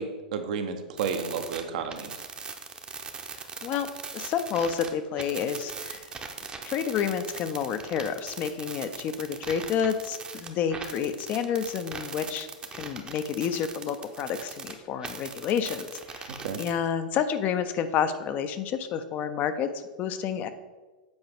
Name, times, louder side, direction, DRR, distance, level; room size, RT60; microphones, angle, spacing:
voice 1, 0.0-2.1 16.4-16.6, right 6 dB, 60° right, 7 dB, 0.7 m, -31 dB
sound 1, 1.0-4.9 5.2-14.7 15.0-16.7, right 5 dB, 20° right, 0.7 m, -39 dB
voice 2, 4.1-6.0 6.6-12.5 12.7-19.7 20.0-20.5, left 8 dB, 40° left, 10 dB, 0.6 m, -29 dB
7.9 x 4.7 x 3.5 m, 1.2 s
figure-of-eight pair, 95°, 5 cm